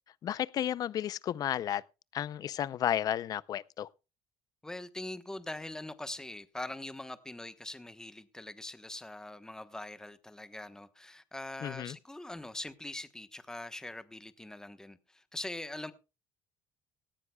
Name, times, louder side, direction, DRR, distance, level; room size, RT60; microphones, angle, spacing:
voice 1, 0.2-1.8 2.1-3.9 11.6-12.0, left 10 dB, 50° left, 0.5 m, -32 dB
voice 2, 4.6-15.9, left 1 dB, 5° left, 1.1 m, -42 dB
18.0 x 14.5 x 2.3 m
cardioid pair, 130°, 8 cm